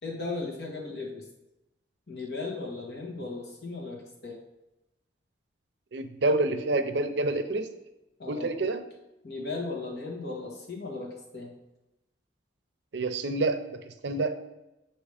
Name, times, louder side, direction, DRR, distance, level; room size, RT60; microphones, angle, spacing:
voice 1, 0.0-1.3 2.1-4.4 8.2-8.5 9.2-11.5, left 3 dB, 60° left, -1 dB, 1.4 m, -36 dB
voice 2, 5.9-7.7 8.3-8.8 12.9-13.6 13.9-14.3, right 2 dB, 70° right, 9 dB, 0.5 m, -27 dB
7.2 x 3.0 x 4.9 m, 0.95 s
head